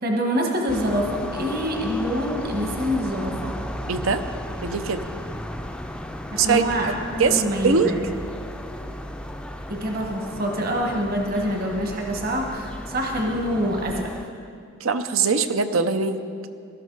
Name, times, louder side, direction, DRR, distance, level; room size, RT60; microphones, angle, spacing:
voice 1, 0.0-3.5 6.3-8.1 9.7-14.1, equal, 45° right, 1 dB, 1.4 m, -26 dB
sound 1, 0.7-14.2, left 1 dB, 5° left, 0.5 m, -35 dB
voice 2, 3.9-4.2 4.6-5.0 6.4-7.9 14.8-16.5, right 5 dB, 70° right, 10 dB, 0.7 m, -22 dB
17.0 x 12.5 x 4.0 m, 2.3 s
head